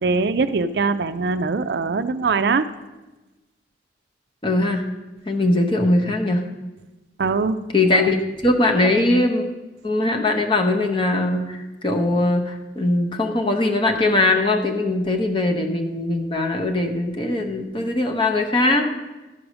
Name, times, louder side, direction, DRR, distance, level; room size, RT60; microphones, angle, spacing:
voice 1, 0.0-2.6 7.2-7.6 7.9-8.0, right 4 dB, 65° right, 12 dB, 0.4 m, -22 dB
voice 2, 4.4-4.8 5.3-6.4 7.7-8.2 8.4-9.4 9.8-18.9, left 2 dB, 25° left, 3 dB, 0.9 m, -20 dB
12.0 x 4.8 x 6.2 m, 1.1 s
head